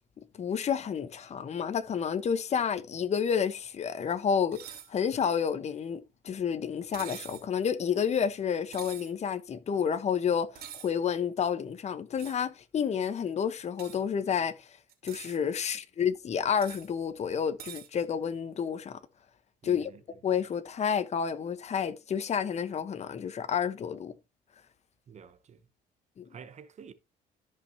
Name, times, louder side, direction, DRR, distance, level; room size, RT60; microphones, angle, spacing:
voice 1, 0.4-14.7 15.0-19.0 19.6-19.9 20.2-24.1 26.2-26.3, left 7 dB, 40° left, 1.1 m, -30 dB
sound 1, 4.5-4.9 6.9-7.5 8.7-9.1 10.6-10.9 12.2-12.4 13.8-14.0 14.9-15.4 16.6-16.9 17.6-17.9, right 10 dB, 70° right, 3.0 m, -45 dB
voice 2, 19.6-20.0 25.1-25.6 26.3-26.9, right 7 dB, 40° right, 0.9 m, -49 dB
13.5 x 5.6 x 2.9 m
cardioid pair, 110°, 17 cm